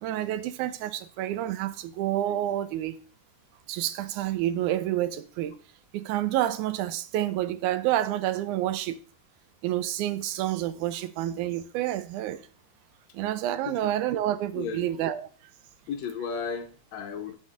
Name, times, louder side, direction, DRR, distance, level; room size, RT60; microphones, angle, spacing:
voice 1, 0.0-3.0 3.7-5.6 5.9-9.0 9.6-12.4 13.1-15.3, right 13 dB, 80° right, 2.0 m, -29 dB
voice 2, 14.5-14.9 15.9-17.4, left 6 dB, 70° left, 1.8 m, -34 dB
11.5 x 5.7 x 2.4 m
omnidirectional pair, 3.6 m